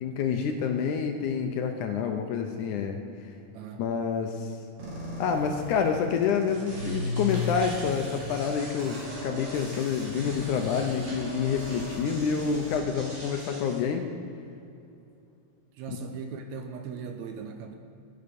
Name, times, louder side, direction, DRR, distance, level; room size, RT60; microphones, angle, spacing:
voice 1, 0.0-3.3 3.8-4.6 5.2-14.1 15.9-16.0, left 6 dB, 80° left, 4 dB, 1.9 m, -28 dB
sound 1, 4.8-12.8, right 1 dB, 40° right, 3.1 m, -41 dB
sound 2, 6.2-13.8, left 2 dB, 65° right, 4.6 m, -37 dB
voice 2, 15.8-17.8, right 6 dB, 90° right, 5 dB, 1.6 m, -38 dB
13.5 x 10.5 x 5.3 m, 2.6 s
omnidirectional pair, 4.3 m